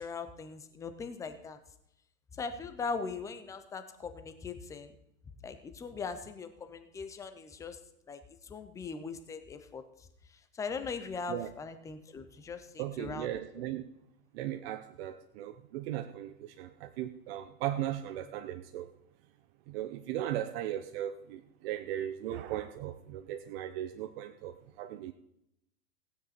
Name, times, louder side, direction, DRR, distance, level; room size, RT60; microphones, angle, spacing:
voice 1, 0.0-1.6 2.3-5.0 5.4-7.8 8.1-13.7, left 5 dB, 5° left, 9 dB, 0.5 m, -40 dB
voice 2, 12.8-13.8 14.3-18.9 19.7-25.1, right 12 dB, 40° right, 7 dB, 0.7 m, -37 dB
16.0 x 9.4 x 4.2 m, 0.80 s
hypercardioid pair, 125°, 50 cm